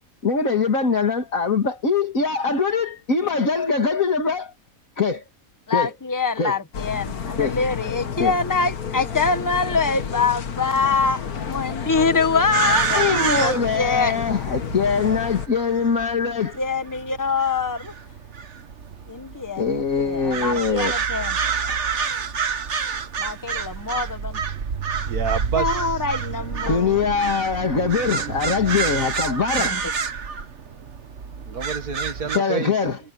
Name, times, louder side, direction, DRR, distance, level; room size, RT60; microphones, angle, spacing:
voice 1, 0.2-4.5 5.0-5.2 5.7-5.9 6.4-6.5 7.4-7.6 8.2-8.3 12.9-16.6 19.6-21.0 21.7-21.8 26.7-29.8 32.3-33.0, left 5 dB, 65° left, 2.8 m, -22 dB
voice 2, 5.7-11.2 11.5-14.1 16.5-17.9 19.1-21.3 23.2-24.4 25.6-27.0 29.6-29.8, left 4 dB, 15° left, 1.5 m, -24 dB
sound 1, 6.7-15.5, left 7 dB, 85° left, 1.9 m, -31 dB
sound 2, 12.5-32.4, right 6 dB, 50° right, 1.5 m, -28 dB
voice 3, 25.1-26.0 31.5-32.8, right 6 dB, 90° right, 2.4 m, -28 dB
omnidirectional pair, 1.5 m